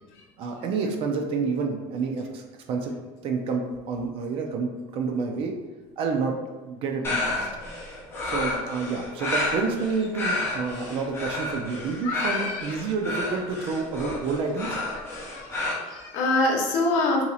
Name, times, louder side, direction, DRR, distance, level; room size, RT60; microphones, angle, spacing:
voice 1, 0.4-2.4 2.7-2.9 3.2-5.6 6.0-6.4 6.6-7.5 8.2-14.8, right 4 dB, 45° right, 3 dB, 0.5 m, -29 dB
sound 1, 7.0-15.7, left 2 dB, 20° left, 0.8 m, -31 dB
voice 2, 12.0-12.8 15.3-17.2, left 2 dB, 70° left, 0 dB, 0.8 m, -25 dB
2.8 x 2.8 x 4.1 m, 1.3 s
cardioid pair, 165°, 13 cm